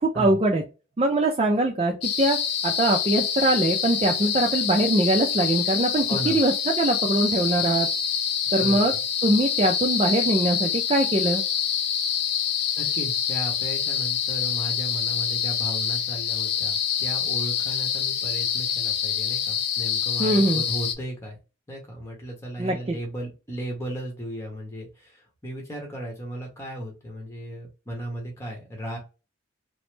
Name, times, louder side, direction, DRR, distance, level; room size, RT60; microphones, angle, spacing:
voice 1, 0.0-0.6 1.0-2.4 2.6-7.9 8.5-8.9 9.2-11.4 20.2-20.6 22.6-23.0, right 2 dB, 30° right, 1 dB, 0.4 m, -22 dB
sound 1, 2.0-21.0, left 8 dB, 55° left, 0.4 m, -26 dB
voice 2, 6.1-6.4 8.6-9.0 12.8-21.4 21.7-29.0, right 1 dB, 15° left, 0 dB, 0.8 m, -35 dB
3.1 x 2.0 x 3.2 m, 0.30 s
head